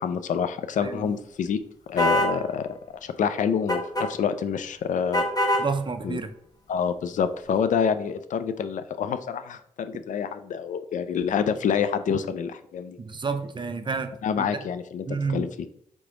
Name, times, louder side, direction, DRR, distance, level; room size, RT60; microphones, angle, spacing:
voice 1, 0.0-1.6 1.9-5.2 6.0-6.2 6.7-13.0 14.2-15.1 15.3-15.5, left 7 dB, 65° left, 11 dB, 0.4 m, -27 dB
voice 2, 0.8-1.1 5.6-6.3 13.0-14.5 15.1-15.5, right 4 dB, 35° right, 9 dB, 0.5 m, -30 dB
sound 1, 2.0-2.4 3.7-4.1 5.1-5.7, equal, 25° left, 1.0 m, -23 dB
3.5 x 3.3 x 3.7 m, 0.68 s
supercardioid pair, 45°, 14 cm